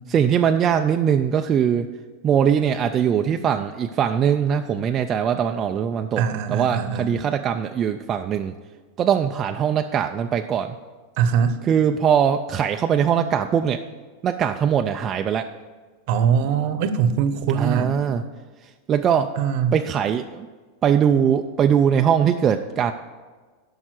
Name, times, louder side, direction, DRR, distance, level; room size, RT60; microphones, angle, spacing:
voice 1, 0.1-1.9 2.2-6.2 6.5-8.5 9.0-10.8 11.6-13.8 14.2-15.5 17.5-18.2 18.9-19.3 19.7-20.5 20.8-22.9, right 8 dB, 25° right, 5 dB, 0.4 m, -21 dB
voice 2, 6.2-7.1 11.2-11.6 16.1-17.9 19.4-19.7, right 7 dB, 50° right, 11 dB, 0.9 m, -22 dB
12.5 x 5.5 x 6.0 m, 1.4 s
supercardioid pair, 160°, 0 cm